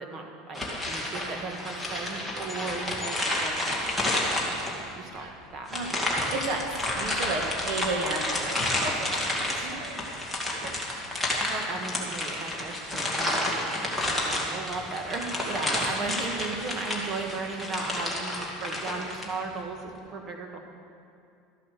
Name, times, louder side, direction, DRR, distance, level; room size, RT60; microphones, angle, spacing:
voice 1, 0.0-5.7 8.1-8.2 9.6-9.8 10.6-20.6, right 3 dB, 35° right, 2 dB, 1.7 m, -37 dB
sound 1, 0.5-4.9 5.7-19.3, left 1 dB, ahead, 2.1 m, -30 dB
voice 2, 6.2-6.7 6.9-10.0 15.5-15.8, right 3 dB, 60° right, 2 dB, 2.0 m, -33 dB
13.5 x 8.7 x 6.8 m, 2.4 s
supercardioid pair, 140°, 0 cm